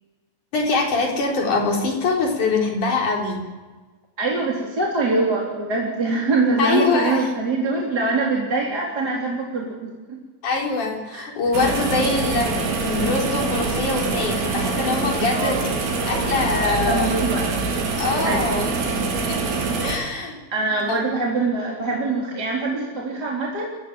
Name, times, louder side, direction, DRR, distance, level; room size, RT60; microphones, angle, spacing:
voice 1, 0.5-3.5 6.6-7.3 10.4-15.6 16.1-17.1 18.0-18.7 19.3-19.4 19.8-20.4 20.9-21.0, left 3 dB, 45° left, 0 dB, 5.4 m, -23 dB
voice 2, 4.2-10.2 11.1-11.3 15.3-15.6 16.6-17.5 18.2-18.5 20.5-23.7, right 3 dB, 25° right, -3 dB, 3.8 m, -24 dB
sound 1, 11.5-20.0, right 4 dB, 80° right, 5.8 m, -24 dB
29.5 x 15.5 x 9.1 m, 1.3 s
omnidirectional pair, 5.0 m